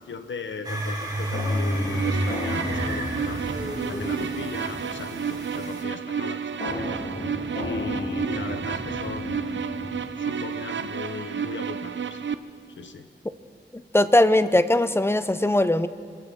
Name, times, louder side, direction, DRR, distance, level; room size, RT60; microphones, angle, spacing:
voice 1, 0.0-3.5 3.9-7.0 7.6-9.6 10.1-12.2 12.8-13.1, left 5 dB, 80° left, 9 dB, 1.0 m, -37 dB
sound 1, 0.6-5.8, equal, 20° right, 2.7 m, -30 dB
sound 2, 1.3-5.1 6.6-10.2, left 1 dB, 60° left, 3.1 m, -34 dB
sound 3, 1.9-12.3, right 7 dB, 75° right, 0.6 m, -31 dB
voice 2, 13.9-15.9, left 1 dB, 10° left, 13 dB, 0.5 m, -19 dB
25.5 x 15.5 x 3.7 m, 2.6 s
wide cardioid pair, 80°, 19 cm